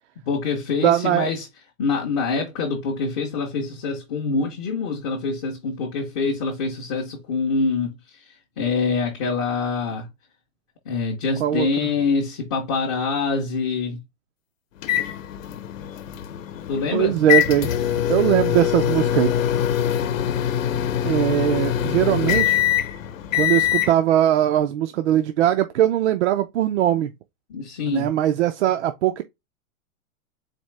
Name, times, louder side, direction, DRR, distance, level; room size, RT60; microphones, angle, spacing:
voice 1, 0.3-1.5 1.8-10.1 10.9-14.0 16.7-17.2 27.5-28.1, left 4 dB, 20° left, 0.5 m, -25 dB
voice 2, 0.8-1.3 11.4-11.9 16.9-17.7 18.1-19.3 21.0-22.6 23.3-27.1 27.9-29.2, right 12 dB, 55° right, 0.4 m, -20 dB
sound 1, 14.8-23.9, left 10 dB, 65° left, 0.8 m, -23 dB
4.3 x 2.7 x 3.2 m
supercardioid pair, 165°, 42 cm